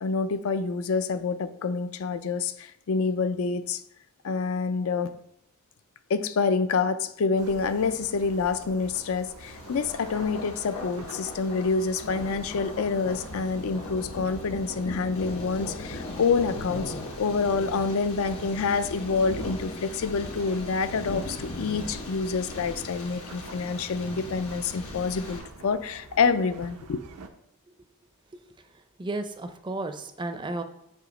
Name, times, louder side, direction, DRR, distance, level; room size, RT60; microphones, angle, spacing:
voice 1, 0.0-3.8 4.2-5.1 6.1-27.0, left 4 dB, 70° left, 0.4 m, -27 dB
sound 1, 7.4-27.3, right 3 dB, 80° right, 0.6 m, -47 dB
Thunder, 9.4-25.4, left 2 dB, 85° left, 1.2 m, -39 dB
voice 2, 29.0-30.6, right 2 dB, 20° right, 0.5 m, -33 dB
7.9 x 2.8 x 5.2 m
head